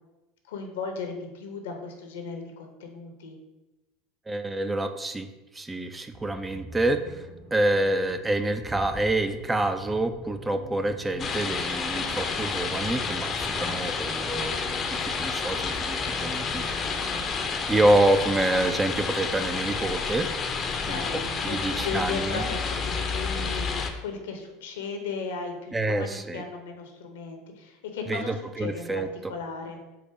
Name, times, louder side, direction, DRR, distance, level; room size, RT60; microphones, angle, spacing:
voice 1, 0.5-3.4 17.0-17.3 20.8-23.7 24.0-29.8, left 4 dB, 75° left, 4 dB, 0.7 m, -36 dB
voice 2, 4.3-5.3 5.5-7.3 7.5-17.1 17.7-20.3 20.9-22.4 25.7-26.4 28.1-29.3, right 2 dB, 15° right, 8 dB, 0.3 m, -27 dB
Accelerating revving vroom, 6.1-23.6, equal, 40° right, 1.2 m, -46 dB
sound 1, 11.2-23.9, left 5 dB, 35° left, 0.5 m, -30 dB
4.7 x 2.1 x 4.6 m, 1.0 s
hypercardioid pair, 80°, 0 cm